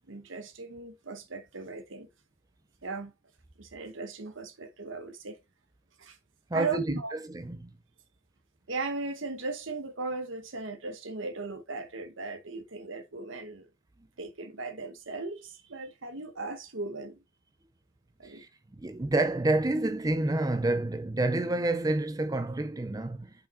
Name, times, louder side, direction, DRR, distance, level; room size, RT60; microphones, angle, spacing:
voice 1, 0.1-2.1 2.8-3.1 3.6-5.4 6.0-6.2 6.5-7.2 8.7-13.7 14.2-17.2 18.2-18.4, right 3 dB, 65° right, 1.1 m, -37 dB
voice 2, 6.5-7.7 18.2-23.3, right 2 dB, 15° right, 0.4 m, -29 dB
5.8 x 4.9 x 4.3 m
head